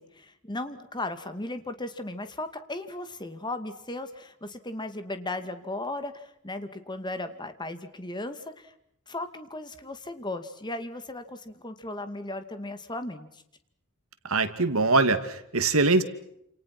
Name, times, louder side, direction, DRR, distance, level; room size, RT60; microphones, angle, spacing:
voice 1, 0.0-8.7 9.1-13.4, left 2 dB, 20° left, 9 dB, 2.3 m, -36 dB
voice 2, 14.2-16.0, right 3 dB, 65° right, 10 dB, 2.5 m, -23 dB
29.0 x 28.5 x 6.1 m, 0.75 s
head